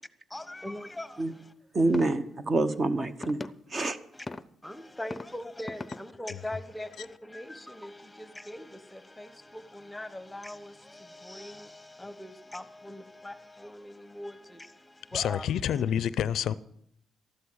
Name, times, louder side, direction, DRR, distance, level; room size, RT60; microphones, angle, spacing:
voice 1, 0.3-1.5 1.9-2.1 3.0-3.1 4.1-4.3 4.6-15.8, left 1 dB, 10° left, 1.1 m, -42 dB
voice 2, 1.7-3.4 3.7-4.0, right 2 dB, 35° right, 1.1 m, -26 dB
sound 1, 1.9-2.2 3.2-3.5 4.3-4.4 5.1-5.3 5.7-6.0, left 3 dB, 25° left, 0.6 m, -37 dB
voice 3, 15.1-16.5, left 9 dB, 75° left, 0.5 m, -28 dB
13.5 x 11.5 x 6.3 m
cardioid pair, 90°, 0 cm